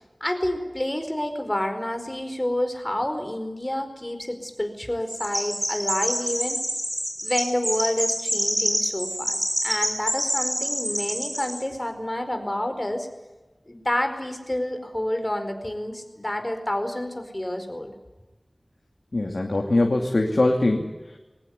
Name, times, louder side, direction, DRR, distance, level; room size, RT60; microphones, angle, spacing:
voice 1, 0.2-6.6 7.2-13.1 13.7-17.9, left 1 dB, 25° left, 7 dB, 4.7 m, -29 dB
Chirp tweet, 5.1-11.6, equal, 15° right, 6.5 m, -27 dB
voice 2, 19.1-21.2, left 2 dB, 75° left, 1 dB, 2.7 m, -22 dB
22.0 x 18.5 x 9.5 m, 1.1 s
wide cardioid pair, 55°, 0 cm